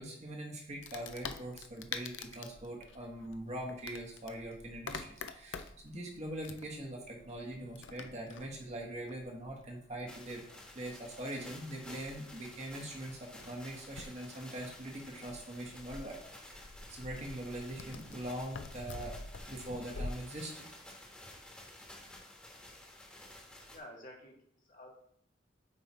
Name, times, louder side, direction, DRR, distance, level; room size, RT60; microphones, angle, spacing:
voice 1, 0.0-10.4 10.7-19.2 19.5-20.8, right 1 dB, 35° right, 0 dB, 1.2 m, -42 dB
Wood, 0.8-20.1, left 4 dB, 80° left, 0.5 m, -48 dB
sound 1, 10.1-23.8, left 1 dB, 5° left, 1.4 m, -53 dB
voice 2, 23.7-24.9, left 1 dB, 45° left, -2 dB, 1.8 m, -51 dB
8.4 x 3.3 x 4.2 m, 0.68 s
head